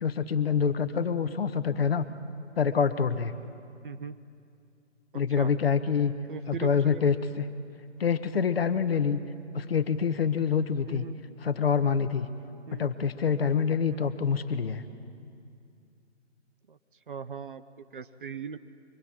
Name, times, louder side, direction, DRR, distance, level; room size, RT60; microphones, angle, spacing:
voice 1, 0.0-2.1 2.6-3.3 5.1-6.1 6.5-7.5 8.0-9.2 9.5-11.0 11.4-12.3 12.7-14.8, left 6 dB, 55° left, 10 dB, 1.3 m, -26 dB
voice 2, 3.8-4.2 5.3-5.5 6.3-7.1 10.9-11.2 12.7-12.9 13.9-14.1 16.7-16.8 17.1-18.6, right 6 dB, 45° right, 12 dB, 0.9 m, -39 dB
24.0 x 23.5 x 8.9 m, 2.4 s
hypercardioid pair, 165°, 36 cm